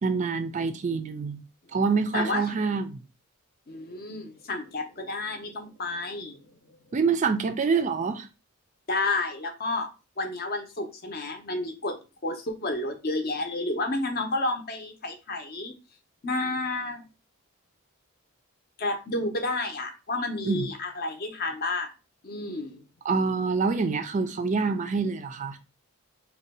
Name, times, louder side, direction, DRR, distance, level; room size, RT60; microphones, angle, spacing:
voice 1, 0.0-1.4 1.7-3.0 6.9-8.3 20.4-20.7 23.0-25.6, right 4 dB, 35° right, 0.3 m, -26 dB
voice 2, 2.1-2.5 3.7-6.5 8.9-9.9 10.2-12.0 12.2-15.7 16.2-17.0 18.8-21.9 22.2-22.8, left 2 dB, 45° left, 0.6 m, -30 dB
2.7 x 2.2 x 4.0 m
head